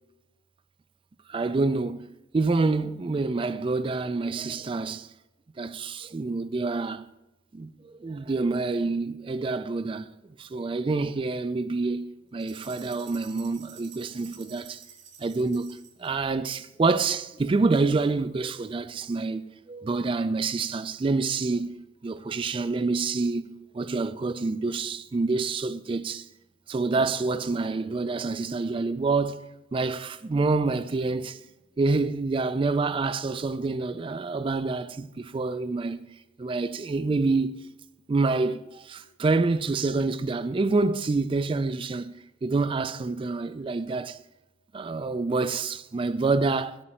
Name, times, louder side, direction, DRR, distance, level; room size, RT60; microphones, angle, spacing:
voice 1, 1.3-2.1 2.3-5.1 5.6-7.1 7.5-10.1 10.4-14.8 15.2-21.8 22.0-23.5 23.7-26.3 26.7-29.4 29.7-31.4 31.8-36.0 36.4-37.5 38.1-42.1 42.4-44.2 44.7-46.8, right 3 dB, 25° right, 0.3 m, -27 dB
sound 1, 12.4-16.1, right 7 dB, 75° right, 2.3 m, -49 dB
8.9 x 8.6 x 4.4 m
head